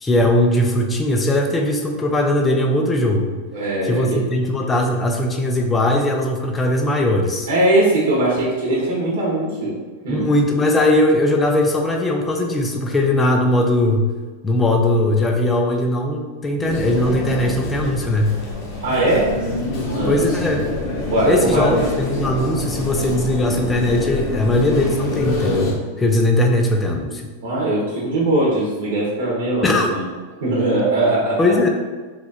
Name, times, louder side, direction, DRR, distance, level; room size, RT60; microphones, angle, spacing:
voice 1, 0.0-3.3 3.8-7.5 10.1-14.1 14.4-18.3 20.1-20.6 21.3-27.3 29.6-29.9 31.4-31.7, left 1 dB, 10° left, 2 dB, 0.3 m, -19 dB
voice 2, 3.5-4.2 7.5-9.8 10.0-10.3 18.8-19.3 19.9-20.2 21.1-21.7 27.4-30.1 30.4-31.5, right 1 dB, 65° right, -6 dB, 0.9 m, -20 dB
sound 1, 16.6-25.7, left 2 dB, 35° left, 0.7 m, -26 dB
3.0 x 2.4 x 4.0 m, 1.4 s
supercardioid pair, 170°, 0 cm